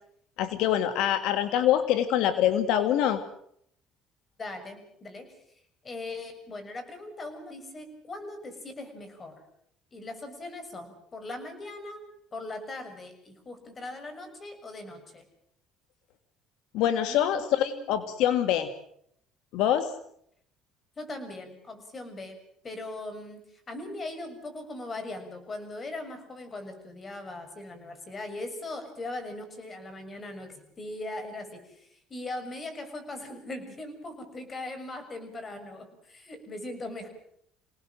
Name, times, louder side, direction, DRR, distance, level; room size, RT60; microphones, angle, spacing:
voice 1, 0.4-3.2 16.7-18.7 19.5-19.9, left 11 dB, 75° left, 9 dB, 1.8 m, -25 dB
voice 2, 4.4-5.4 5.8-9.4 9.9-12.0 12.3-15.2 17.0-17.9 21.0-22.4 22.6-37.1, left 2 dB, 30° left, 7 dB, 6.8 m, -40 dB
27.5 x 18.5 x 7.7 m, 0.71 s
cardioid pair, 120°, 0 cm